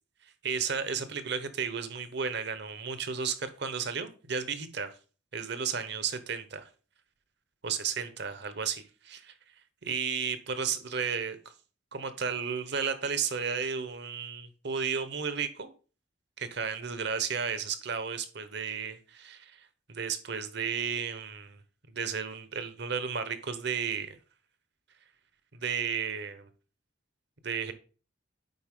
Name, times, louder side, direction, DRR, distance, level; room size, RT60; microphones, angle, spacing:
voice 1, 0.2-4.9 5.3-6.7 7.6-9.3 9.8-11.5 11.9-15.7 16.4-21.6 21.9-24.2 25.5-26.5 27.4-27.7, right 6 dB, 55° right, 0.9 m, -33 dB
9.4 x 4.2 x 3.7 m
head